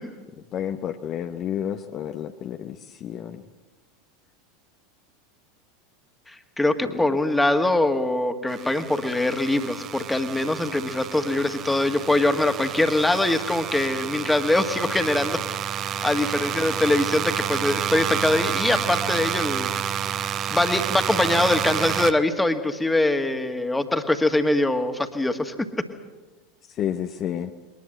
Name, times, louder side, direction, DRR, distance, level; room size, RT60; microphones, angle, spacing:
voice 1, 0.5-3.4 6.9-7.1 26.6-27.5, left 10 dB, 35° left, 7 dB, 0.9 m, -30 dB
voice 2, 6.3-15.4 16.0-19.7 20.5-25.5, left 2 dB, 5° left, 7 dB, 1.9 m, -23 dB
sound 1, 8.5-22.1, right 9 dB, 35° right, 0.8 m, -29 dB
21.5 x 19.5 x 7.7 m, 1.2 s
figure-of-eight pair, 80°, 0 cm